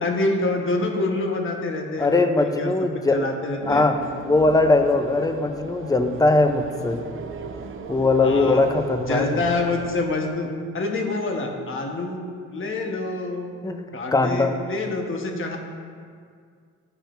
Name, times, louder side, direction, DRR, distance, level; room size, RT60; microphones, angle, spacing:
voice 1, 0.0-3.8 8.2-8.6 9.0-10.5 10.7-13.5 13.9-15.6, left 2 dB, 45° left, 2 dB, 1.1 m, -27 dB
voice 2, 2.0-3.2 3.6-4.0 4.3-7.1 7.9-9.3 13.6-13.8 14.1-14.6, left 2 dB, 10° left, 6 dB, 0.5 m, -20 dB
sound 1, 3.6-10.3, right 5 dB, 45° right, 0.6 m, -38 dB
12.0 x 4.9 x 2.6 m, 2.1 s
cardioid pair, 90°, 30 cm